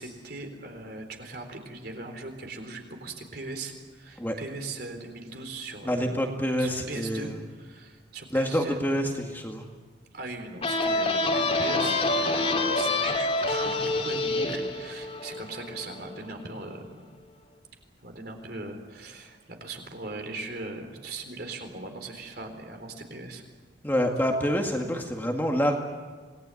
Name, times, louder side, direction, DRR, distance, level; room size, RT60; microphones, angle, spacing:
voice 1, 0.0-6.3 6.6-8.8 10.1-17.0 18.0-23.4, right 2 dB, 55° right, 4 dB, 4.0 m, -39 dB
voice 2, 5.9-7.3 8.3-9.7 23.8-25.7, equal, 10° left, 2 dB, 2.0 m, -27 dB
sound 1, 10.6-16.1, left 2 dB, 30° left, 2.8 m, -27 dB
27.0 x 19.5 x 9.9 m, 1.5 s
head